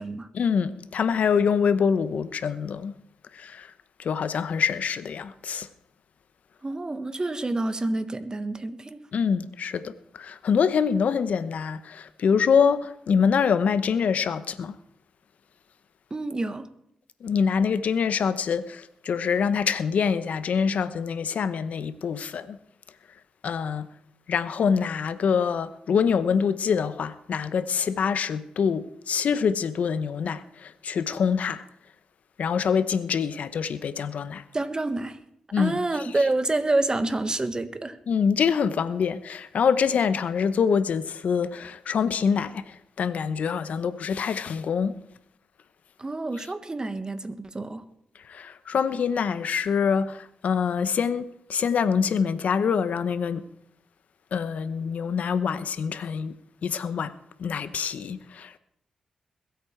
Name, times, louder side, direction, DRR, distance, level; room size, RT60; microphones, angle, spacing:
voice 1, 0.3-3.0 3.3-3.7 4.0-5.7 9.1-14.8 17.2-22.6 23.4-23.9 24.3-31.6 32.4-34.4 35.5-36.2 38.1-45.0 48.2-53.5 54.3-56.4 56.6-57.1 57.4-58.6, left 6 dB, 75° left, 0.9 m, -25 dB
voice 2, 6.6-9.0 16.1-16.7 34.5-35.2 35.6-38.0 46.0-47.8, right 2 dB, 30° right, 1.6 m, -28 dB
21.5 x 8.5 x 4.6 m
supercardioid pair, 50°, 2 cm